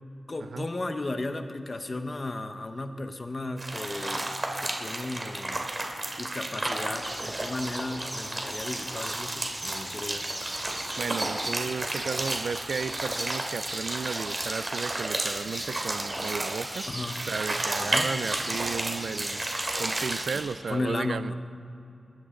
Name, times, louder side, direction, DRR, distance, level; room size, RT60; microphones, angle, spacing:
voice 1, 0.3-5.6 6.2-10.3 16.9-17.2 17.8-18.1 20.7-21.3, left 2 dB, 40° left, 7 dB, 1.1 m, -34 dB
sound 1, 3.6-20.5, right 2 dB, 35° right, 2.7 m, -33 dB
sound 2, 7.0-20.4, right 1 dB, 20° right, 3.1 m, -38 dB
voice 2, 11.0-16.9 17.3-19.4 19.8-21.3, right 5 dB, 85° right, 15 dB, 0.4 m, -34 dB
20.5 x 14.5 x 3.9 m, 2.8 s
cardioid pair, 60°, 0 cm